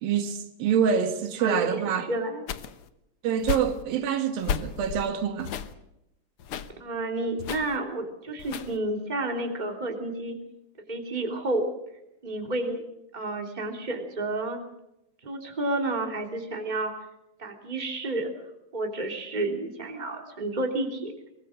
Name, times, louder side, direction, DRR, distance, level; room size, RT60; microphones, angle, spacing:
voice 1, 0.0-2.1 3.2-5.5, right 7 dB, 80° right, 3.3 m, -26 dB
voice 2, 1.4-1.8 2.1-2.4 6.8-10.4 10.9-11.6 12.2-12.8 13.1-14.6 15.2-16.9 17.4-18.3 18.7-21.3, right 2 dB, 15° right, 2.8 m, -30 dB
sound 1, 2.5-2.9 3.4-3.8 4.4-5.1 5.4-5.7 6.4-6.7 7.4-7.8 8.4-8.8, left 7 dB, 90° left, 1.2 m, -33 dB
23.0 x 21.5 x 6.4 m
omnidirectional pair, 4.1 m